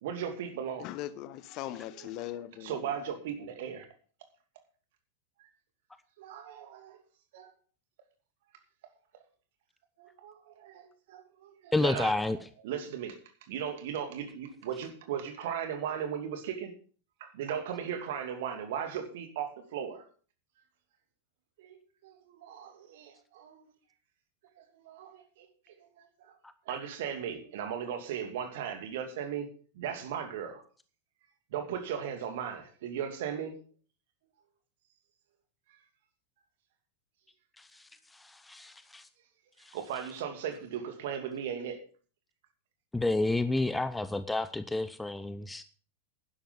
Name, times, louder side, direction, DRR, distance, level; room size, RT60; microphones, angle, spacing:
voice 1, 0.0-0.9 1.9-2.1 2.6-3.9 5.4-5.5 6.2-7.0 7.3-7.5 10.0-12.1 12.6-13.2 13.5-16.7 17.2-20.0 21.6-23.7 24.6-26.4 26.7-29.5 29.7-30.6 31.5-33.5 39.7-41.8, right 8 dB, 55° right, 2.5 m, -37 dB
voice 2, 0.8-2.8, left 13 dB, 40° left, 1.0 m, -39 dB
voice 3, 11.7-12.4 37.6-37.8 38.1-39.1 39.6-39.8 42.9-45.6, left 2 dB, 5° left, 0.6 m, -30 dB
11.5 x 11.0 x 5.3 m
figure-of-eight pair, 90°, 0 cm